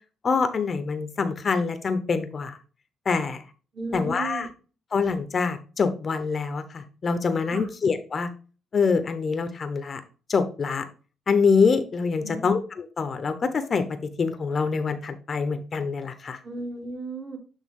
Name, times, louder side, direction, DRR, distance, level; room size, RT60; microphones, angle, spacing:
voice 1, 0.2-2.6 3.1-3.4 3.9-4.5 4.9-8.3 8.7-10.0 10.3-10.8 11.3-13.8 14.2-16.4, left 5 dB, 45° left, 10 dB, 0.7 m, -25 dB
voice 2, 3.7-4.5 7.5-7.7 12.2-12.5 16.4-17.4, right 2 dB, 40° right, 0 dB, 2.4 m, -34 dB
8.3 x 3.4 x 3.6 m, 0.36 s
cardioid pair, 90°, 0 cm